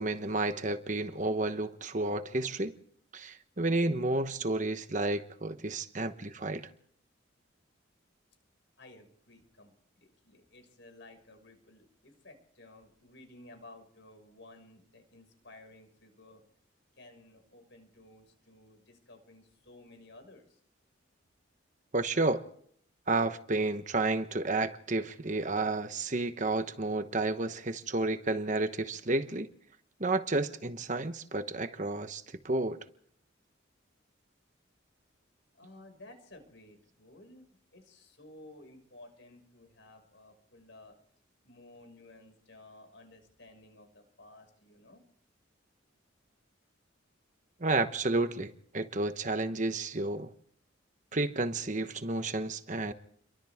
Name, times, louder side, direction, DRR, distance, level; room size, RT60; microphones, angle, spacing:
voice 1, 0.0-2.7 3.1-6.7 21.9-22.4 23.1-29.5 30.0-32.8 47.6-50.3 51.1-52.9, right 2 dB, 40° right, 1.2 m, -31 dB
voice 2, 8.8-16.4 16.9-20.6 35.5-37.5 37.7-41.0 41.4-45.0, left 2 dB, 65° left, 6.0 m, -55 dB
30.0 x 24.0 x 3.7 m
head